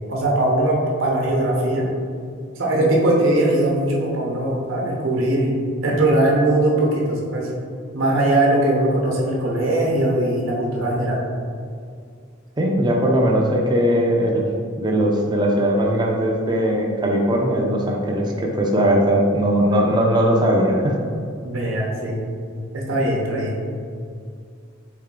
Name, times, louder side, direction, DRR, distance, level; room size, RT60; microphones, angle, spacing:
voice 1, 0.1-1.9 2.6-5.5 5.8-7.5 7.9-11.2 21.4-22.2 22.7-23.6, right 1 dB, 85° right, -2 dB, 0.8 m, -20 dB
voice 2, 12.6-14.4 14.8-21.0, equal, 20° right, 0 dB, 0.5 m, -19 dB
4.1 x 3.3 x 3.7 m, 2.2 s
head